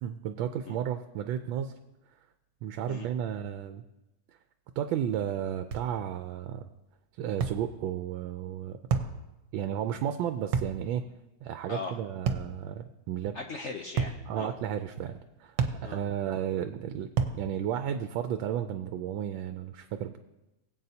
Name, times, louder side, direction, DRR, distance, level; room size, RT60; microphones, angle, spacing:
voice 1, 0.0-1.7 2.6-3.8 4.8-6.6 7.2-8.8 9.5-11.1 11.4-13.4 14.3-15.6 15.8-17.1 17.3-20.2, right 9 dB, 85° right, 8 dB, 1.3 m, -33 dB
sound 1, 5.7-5.9 7.4-7.6 8.9-9.2 10.5-10.8 12.3-12.5 14.0-14.2 15.6-15.8 17.2-17.4, right 6 dB, 70° right, 1.4 m, -28 dB
voice 2, 11.7-12.0 13.3-14.5 15.8-16.0, left 4 dB, 85° left, 3 dB, 0.6 m, -39 dB
21.0 x 8.2 x 2.8 m, 0.98 s
omnidirectional pair, 2.1 m